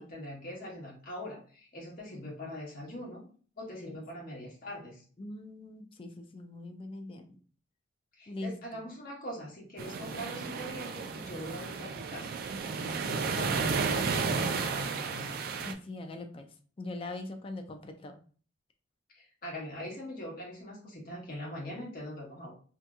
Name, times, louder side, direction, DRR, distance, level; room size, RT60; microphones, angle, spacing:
voice 1, 0.0-3.2 3.6-5.0 8.2-12.3 13.0-15.3 19.1-22.5, equal, 45° left, -3 dB, 1.1 m, -42 dB
voice 2, 5.2-7.4 8.3-8.8 15.5-16.5 16.8-18.2, left 2 dB, 30° left, 6 dB, 0.3 m, -42 dB
sound 1, 9.8-15.7, right 5 dB, 50° right, 0.3 m, -33 dB
2.8 x 2.6 x 2.3 m, 0.42 s
head